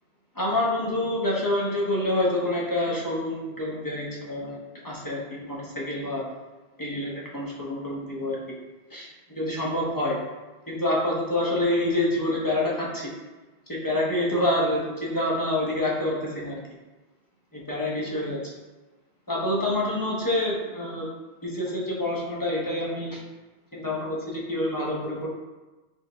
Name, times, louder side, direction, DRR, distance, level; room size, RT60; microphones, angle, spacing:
voice 1, 0.3-4.6 4.8-6.2 6.8-8.4 8.9-9.1 9.3-10.2 10.7-13.1 13.7-16.6 17.5-18.5 19.3-21.1 21.4-23.2 23.7-25.4, left 1 dB, 20° left, -5 dB, 0.8 m, -27 dB
4.4 x 3.2 x 3.4 m, 1.2 s
omnidirectional pair, 1.1 m